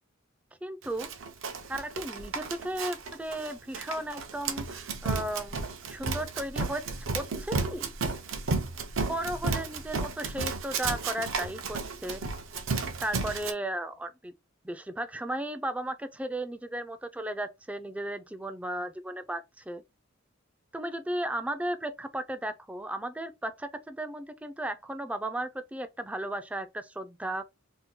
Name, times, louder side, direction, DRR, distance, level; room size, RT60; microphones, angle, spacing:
voice 1, 0.6-1.1 1.7-7.9 9.1-12.2 13.0-14.3 14.6-19.8 20.7-27.4, right 1 dB, 5° right, 0.3 m, -35 dB
Run, 1.0-13.5, right 4 dB, 65° right, 0.6 m, -33 dB
2.8 x 2.2 x 3.6 m
head